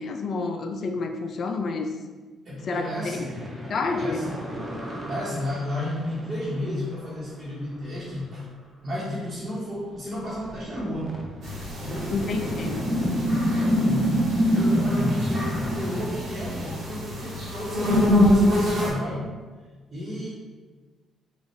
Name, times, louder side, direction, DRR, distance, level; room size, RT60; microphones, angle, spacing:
voice 1, 0.0-1.9 2.7-3.2 3.6-4.2 12.1-12.8, left 3 dB, 55° left, 5 dB, 0.3 m, -29 dB
voice 2, 2.4-3.5 3.9-4.4 5.1-8.5 8.8-11.2 11.8-12.2 13.5-14.2 14.5-19.3 19.9-20.3, left 1 dB, 40° right, -9 dB, 1.2 m, -32 dB
sound 1, 3.0-6.9 8.0-8.1 9.9-10.0 10.4-16.1, equal, 20° right, 0.7 m, -27 dB
sound 2, 11.4-18.9, left 1 dB, 60° right, 1.3 m, -26 dB
4.0 x 2.4 x 3.3 m, 1.3 s
cardioid pair, 90°, 0 cm